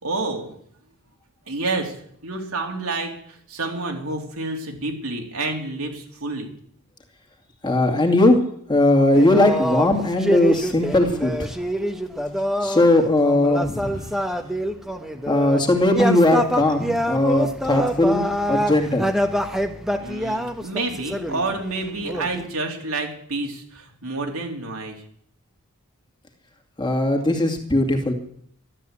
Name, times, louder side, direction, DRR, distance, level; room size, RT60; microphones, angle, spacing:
voice 1, 0.0-0.5 1.5-2.0 2.2-6.5 13.9-14.7 20.0-25.0, right 3 dB, 80° right, 2 dB, 3.5 m, -29 dB
voice 2, 7.6-8.4 8.7-11.5 12.6-14.0 15.3-18.2 18.5-19.0 26.8-28.1, left 1 dB, 20° left, 4 dB, 2.4 m, -19 dB
sound 1, 9.1-12.9 13.2-15.6 15.9-22.5, equal, ahead, 1.3 m, -26 dB
13.0 x 12.0 x 8.5 m, 0.64 s
head